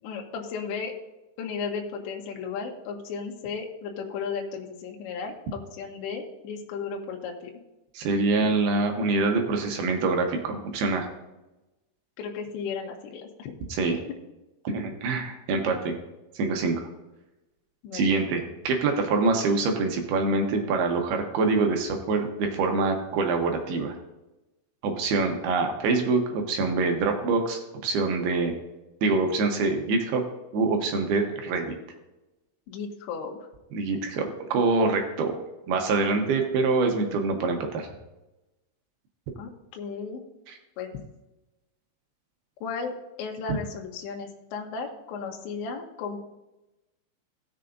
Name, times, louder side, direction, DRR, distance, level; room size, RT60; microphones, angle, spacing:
voice 1, 0.0-0.9 1.4-7.5 12.2-13.5 13.9-14.1 14.7-14.8 17.8-18.1 32.7-33.4 39.4-40.2 40.8-40.9 42.6-46.2, left 5 dB, 80° left, 1 dB, 3.2 m, -35 dB
voice 2, 7.9-11.1 13.7-14.0 14.6-16.0 16.4-16.8 17.9-24.0 24.8-28.5 29.0-30.2 30.5-31.8 33.7-35.3 35.7-37.9 40.5-40.6, right 3 dB, 75° right, 3 dB, 2.6 m, -25 dB
18.5 x 6.8 x 2.6 m, 1.0 s
omnidirectional pair, 5.3 m